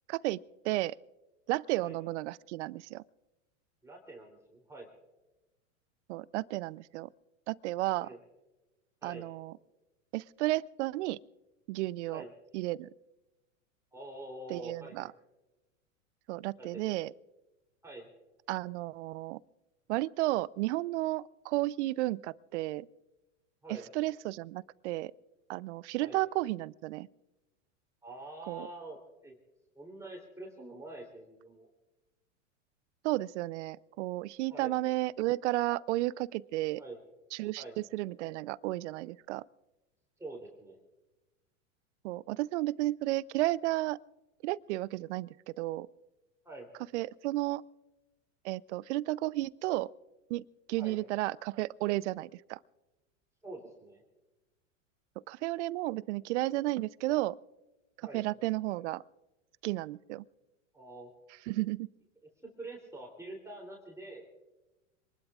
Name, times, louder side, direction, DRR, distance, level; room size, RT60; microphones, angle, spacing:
voice 1, 0.1-0.4 0.6-1.0 1.5-3.0 6.1-7.1 7.5-8.1 9.0-9.5 10.1-11.2 11.7-12.2 12.5-12.9 14.5-15.1 16.3-17.1 18.5-19.4 19.9-22.9 23.9-25.1 25.5-27.1 28.5-28.7 33.0-36.8 37.3-39.4 42.0-44.0 44.4-45.9 46.9-47.6 48.4-49.9 50.3-50.4 50.7-52.6 55.3-57.4 58.0-59.0 59.6-60.2 61.5-61.9, right 18 dB, 60° right, 0.6 m, -33 dB
voice 2, 3.8-4.9 8.0-8.2 9.0-9.3 12.1-12.3 13.9-15.1 16.6-16.9 17.8-18.1 23.6-23.9 26.0-26.2 28.0-29.0 29.2-29.4 29.7-31.7 34.5-34.9 36.8-37.0 37.6-37.8 40.2-40.8 46.4-46.7 50.8-51.0 53.4-54.0 58.0-58.2 60.7-61.1 62.4-64.2, right 2 dB, 10° right, 3.2 m, -46 dB
26.0 x 20.0 x 2.4 m
hypercardioid pair, 105°, 39 cm